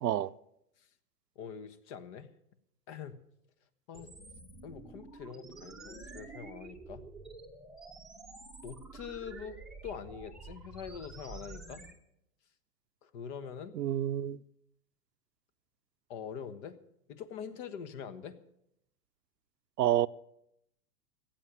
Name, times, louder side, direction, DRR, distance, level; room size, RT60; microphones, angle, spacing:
voice 1, 0.0-0.3 13.7-14.4 19.8-20.1, right 12 dB, 85° right, 0.7 m, -28 dB
voice 2, 1.3-2.3 2.9-3.2 3.9-4.1 4.6-7.1 8.6-11.8 13.0-13.8 16.1-16.8 17.1-18.4, left 7 dB, 45° left, 1.5 m, -44 dB
sound 1, 3.9-11.9, right 3 dB, ahead, 1.0 m, -49 dB
15.0 x 9.0 x 9.3 m
hypercardioid pair, 130°, 48 cm